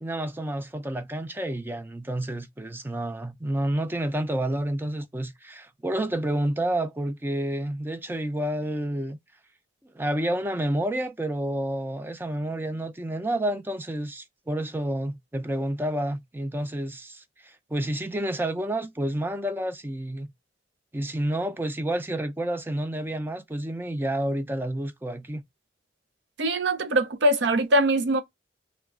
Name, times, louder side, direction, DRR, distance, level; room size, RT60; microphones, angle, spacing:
voice 1, 0.0-9.2 9.9-20.3 20.9-25.4, right 1 dB, 10° right, 0.4 m, -29 dB
voice 2, 26.4-28.2, right 1 dB, 75° right, 0.5 m, -22 dB
3.2 x 2.0 x 2.4 m
head